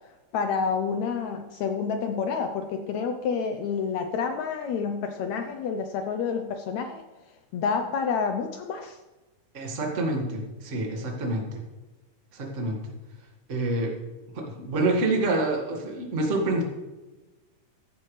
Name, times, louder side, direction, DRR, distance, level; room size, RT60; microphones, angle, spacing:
voice 1, 0.3-7.0 7.5-9.0, left 5 dB, 75° left, 6 dB, 1.7 m, -29 dB
voice 2, 9.5-11.4 12.3-12.8 13.5-13.9 14.3-16.6, right 2 dB, 30° right, 0 dB, 1.7 m, -27 dB
15.5 x 10.0 x 3.2 m, 1.1 s
omnidirectional pair, 3.8 m